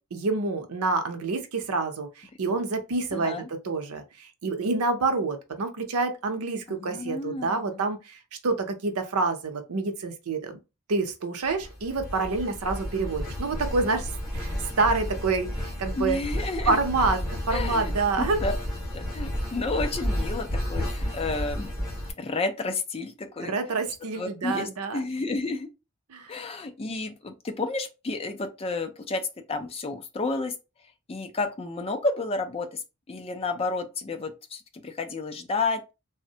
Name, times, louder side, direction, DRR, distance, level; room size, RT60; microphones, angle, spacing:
voice 1, 0.1-10.6 10.9-16.2 16.7-17.2 17.5-18.4 23.4-25.0 26.1-26.3, right 3 dB, 75° right, 0.6 m, -27 dB
voice 2, 3.1-3.5 6.7-7.8 15.9-16.8 17.5-17.9 18.2-18.5 18.9-21.7 22.2-23.6 24.2-25.7 26.3-29.2 29.5-30.5 31.1-32.8 33.1-35.9, left 3 dB, 25° left, 0.4 m, -31 dB
sound 1, 11.4-22.1, equal, ahead, 1.8 m, -32 dB
3.3 x 2.1 x 2.7 m
head